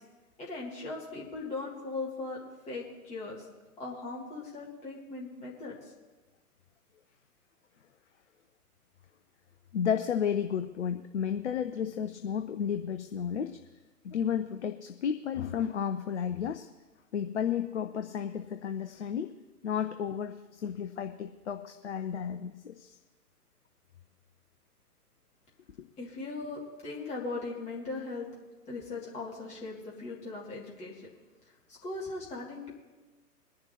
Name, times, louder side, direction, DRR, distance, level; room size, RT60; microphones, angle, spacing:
voice 1, 0.4-3.5 3.8-5.8 26.0-28.3 28.7-31.1 31.7-32.7, left 3 dB, 15° left, -4 dB, 2.2 m, -39 dB
voice 2, 9.7-13.6 14.0-16.7 17.1-19.3 19.6-23.0, left 8 dB, 45° left, 8 dB, 0.7 m, -32 dB
22.5 x 10.5 x 2.9 m, 1.2 s
figure-of-eight pair, 120°, 47 cm